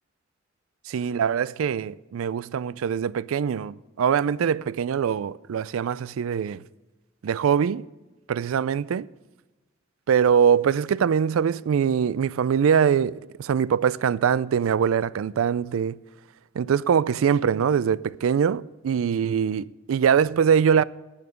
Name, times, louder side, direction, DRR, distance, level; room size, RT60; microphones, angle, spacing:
voice 1, 0.9-6.6 7.2-7.9 8.3-9.1 10.1-16.0 16.6-20.8, right 7 dB, 85° right, 0.4 m, -23 dB
11.0 x 9.6 x 5.1 m
head